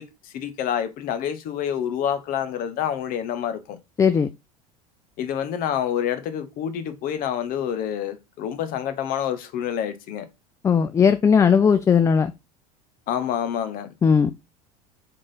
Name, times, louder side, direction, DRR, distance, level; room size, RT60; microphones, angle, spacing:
voice 1, 0.0-3.8 5.2-10.3 13.1-13.9, left 9 dB, 45° left, 0.9 m, -27 dB
voice 2, 4.0-4.3 10.6-12.3 14.0-14.4, left 6 dB, 15° left, 0.3 m, -18 dB
3.8 x 3.7 x 3.8 m
figure-of-eight pair, 75°, 20 cm